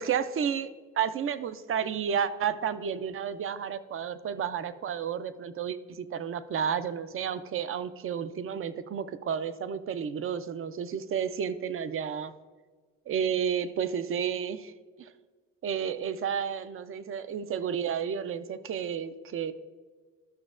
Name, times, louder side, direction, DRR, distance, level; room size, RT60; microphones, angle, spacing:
voice 1, 0.0-12.3 13.1-14.7 15.0-15.1 15.6-19.5, right 8 dB, 45° right, 13 dB, 0.5 m, -31 dB
12.0 x 6.2 x 2.5 m, 1.4 s
cardioid pair, 90°, 30 cm